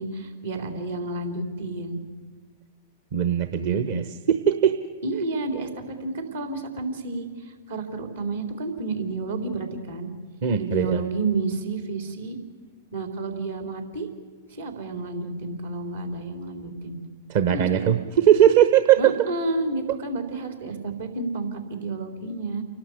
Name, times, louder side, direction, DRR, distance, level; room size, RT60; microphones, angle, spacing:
voice 1, 0.0-2.0 3.5-4.1 5.0-10.1 10.6-12.4 12.9-14.1 14.5-17.0 17.5-18.0 19.0-22.6, right 3 dB, 80° right, 5 dB, 3.8 m, -30 dB
voice 2, 3.1-4.0 4.3-4.7 10.4-11.0 17.3-19.0, right 10 dB, 55° right, 9 dB, 1.0 m, -19 dB
29.5 x 12.0 x 8.3 m, 1.5 s
figure-of-eight pair, 100°, 0 cm